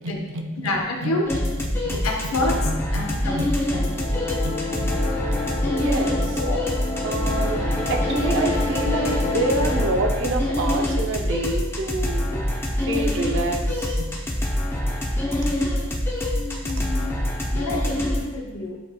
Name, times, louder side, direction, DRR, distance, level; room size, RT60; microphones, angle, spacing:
voice 1, 0.0-0.7 1.0-1.4 1.8-2.3 2.6-3.1 3.3-3.5 3.7-4.9 5.2-5.4 5.7-6.4 7.0-7.6 7.9-12.3 12.8-14.1 15.3-15.4 17.0-17.1, right 2 dB, 60° right, 4 dB, 0.5 m, -28 dB
voice 2, 0.6-1.3 2.0-2.6 2.9-3.4 3.7-3.8 6.4-6.6 12.3-12.4 16.3-17.2 17.5-18.8, left 2 dB, 85° left, 1 dB, 0.8 m, -28 dB
sound 1, 1.2-18.2, left 1 dB, 10° left, 0.5 m, -25 dB
sound 2, 3.6-9.9, left 2 dB, 55° left, 1.4 m, -29 dB
7.7 x 2.8 x 2.2 m, 1.2 s
head